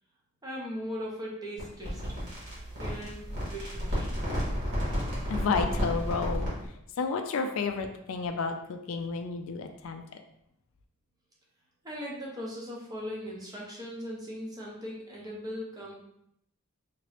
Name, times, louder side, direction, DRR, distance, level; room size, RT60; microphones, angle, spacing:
voice 1, 0.4-2.3 2.8-4.1 11.8-15.9, equal, 15° right, -4 dB, 0.7 m, -39 dB
sound 1, 1.6-6.7, equal, 50° right, 1.5 m, -32 dB
voice 2, 5.3-6.5 7.0-10.0, left 5 dB, 65° left, 6 dB, 0.3 m, -31 dB
2.9 x 2.9 x 3.1 m, 0.76 s
head